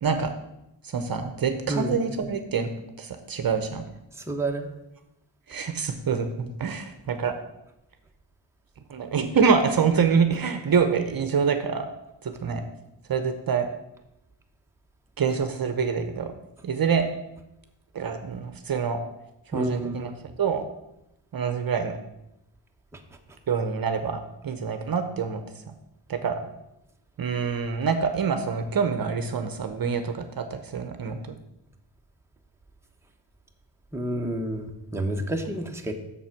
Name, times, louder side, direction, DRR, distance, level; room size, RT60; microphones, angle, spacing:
voice 1, 0.0-0.3 0.8-2.7 3.0-3.9 5.5-7.3 8.9-11.9 12.2-12.7 13.1-13.7 15.2-16.3 16.6-17.1 17.9-19.0 19.5-20.1 20.4-20.6 21.3-21.9 23.5-25.4 26.1-26.4 27.2-31.4, right 6 dB, 50° right, 8 dB, 0.9 m, -26 dB
voice 2, 1.7-2.0 4.1-4.7 19.5-20.1 22.9-23.0 33.9-35.9, right 1 dB, 5° right, 2 dB, 1.1 m, -29 dB
7.3 x 7.0 x 5.9 m, 0.88 s
wide cardioid pair, 115°, 47 cm